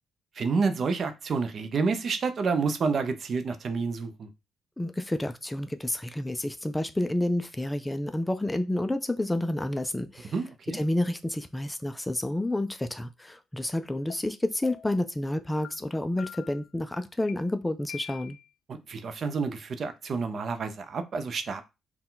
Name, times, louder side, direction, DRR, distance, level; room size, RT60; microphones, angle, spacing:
voice 1, 0.4-4.3 10.3-10.8 18.7-21.6, right 4 dB, 50° right, 0.6 m, -29 dB
voice 2, 4.8-10.3 10.7-18.4, left 1 dB, 10° left, 0.3 m, -29 dB
sound 1, 14.1-14.2 14.6-15.0 15.6-15.7 16.2-16.6 17.3-17.4 17.9-18.5, left 9 dB, 80° left, 0.5 m, -44 dB
4.3 x 2.2 x 3.8 m
cardioid pair, 90°, 0 cm